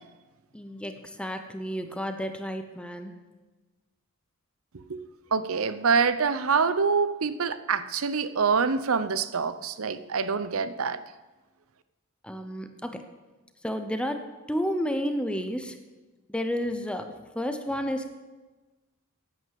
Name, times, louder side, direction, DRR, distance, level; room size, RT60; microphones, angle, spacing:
voice 1, 0.5-3.2 12.2-13.0 13.6-15.8 16.3-18.2, equal, 5° left, 7 dB, 0.8 m, -31 dB
voice 2, 5.3-11.0, right 5 dB, 70° right, 14 dB, 0.7 m, -25 dB
10.5 x 9.5 x 7.6 m, 1.2 s
head